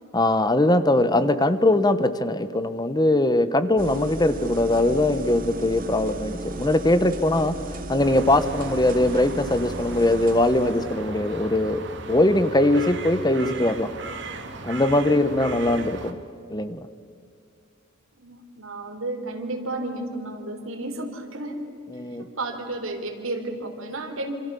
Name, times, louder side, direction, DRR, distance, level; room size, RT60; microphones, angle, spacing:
voice 1, 0.1-7.5 7.9-11.8 12.1-13.9 14.6-16.2 16.5-16.8 21.9-22.3, left 1 dB, 20° left, 12 dB, 0.9 m, -21 dB
sound 1, 3.8-10.9, right 2 dB, 45° right, 2.0 m, -35 dB
sound 2, 8.0-16.1, right 3 dB, 60° right, 2.0 m, -37 dB
voice 2, 18.2-21.6 22.2-24.3, right 2 dB, 85° right, 5 dB, 3.5 m, -32 dB
27.5 x 26.5 x 6.9 m, 2.3 s
head